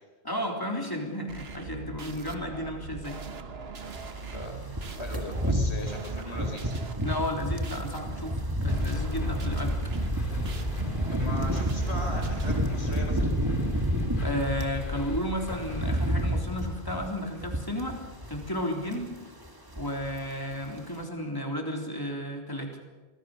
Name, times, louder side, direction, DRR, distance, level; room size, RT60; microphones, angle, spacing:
voice 1, 0.2-3.2 7.0-9.8 14.2-18.0 18.3-19.1 19.8-22.8, left 1 dB, 20° left, 1 dB, 3.7 m, -33 dB
sound 1, 1.3-12.6, right 5 dB, 70° right, 1.5 m, -41 dB
sound 2, 3.9-14.8 15.2-18.6 18.9-19.1 19.4-20.3 20.5-20.7, equal, 20° right, 1.8 m, -30 dB
voice 2, 4.9-6.8 10.8-13.3, left 1 dB, 85° left, 3 dB, 4.9 m, -39 dB
sound 3, 8.6-16.4, left 2 dB, 50° left, 2.9 m, -35 dB
26.5 x 19.0 x 6.7 m, 1.3 s
omnidirectional pair, 1.1 m